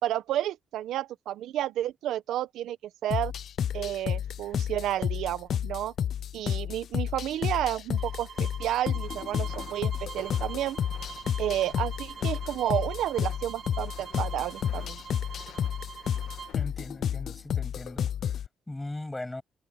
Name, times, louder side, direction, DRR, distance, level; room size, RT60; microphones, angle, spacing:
voice 1, 0.0-2.8 3.0-3.3 3.7-5.9 6.3-10.8 11.4-15.0, right 12 dB, 80° right, 1.3 m, -31 dB
sound 1, 3.1-18.5, left 9 dB, 60° left, 0.4 m, -31 dB
sound 2, 7.9-16.6, right 6 dB, 50° right, 3.4 m, -44 dB
Walk footsteps, 9.0-16.7, left 11 dB, 85° left, 2.3 m, -52 dB
voice 2, 16.5-19.4, left 2 dB, 15° left, 8.0 m, -39 dB
cardioid pair, 90°, 0 cm